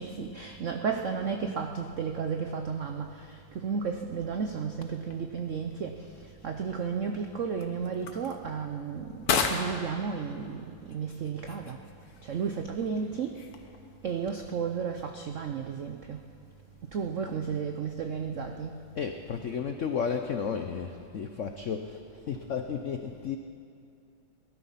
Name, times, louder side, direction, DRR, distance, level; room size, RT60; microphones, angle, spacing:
voice 1, 0.0-6.0 6.4-11.8 12.2-13.4 14.0-16.2 16.9-18.7, right 6 dB, 75° right, 5 dB, 0.7 m, -33 dB
Can Crush, 4.9-14.1, left 5 dB, 55° left, 1.4 m, -37 dB
voice 2, 18.9-23.4, left 6 dB, 80° left, 6 dB, 0.6 m, -33 dB
19.0 x 12.5 x 5.7 m, 2.4 s
omnidirectional pair, 2.2 m